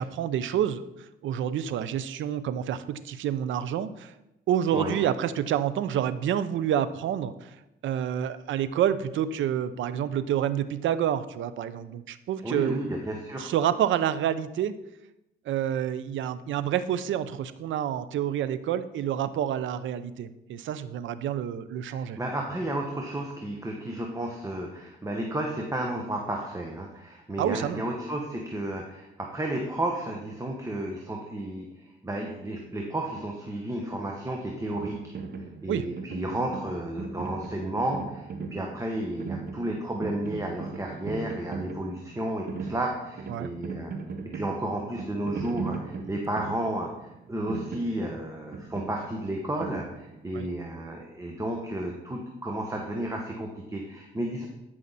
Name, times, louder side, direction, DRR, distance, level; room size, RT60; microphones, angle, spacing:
voice 1, 0.0-4.1 4.5-7.6 7.8-12.8 13.4-14.7 15.5-22.2 27.4-27.8 35.7-35.9 43.3-43.5 50.3-50.5, right 10 dB, 75° right, 14 dB, 0.7 m, -28 dB
voice 2, 12.4-13.5 21.9-35.1 35.6-38.2 38.5-43.9 44.3-46.9 47.3-54.5, right 1 dB, 15° right, 1 dB, 1.3 m, -32 dB
sound 1, 34.7-50.5, right 4 dB, 50° right, 1.0 m, -39 dB
13.5 x 5.8 x 4.1 m, 0.92 s
cardioid pair, 90°, 20 cm